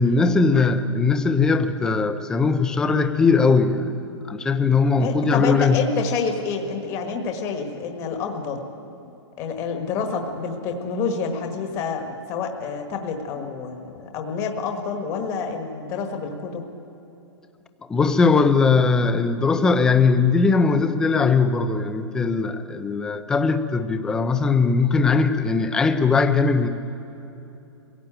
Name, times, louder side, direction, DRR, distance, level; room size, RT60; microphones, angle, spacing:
voice 1, 0.0-5.8 17.9-26.7, left 4 dB, 5° left, 9 dB, 0.5 m, -20 dB
voice 2, 5.0-8.6 9.4-16.7, left 5 dB, 20° left, 4 dB, 1.5 m, -28 dB
22.0 x 17.0 x 8.9 m, 2.9 s
hypercardioid pair, 175°, 15 cm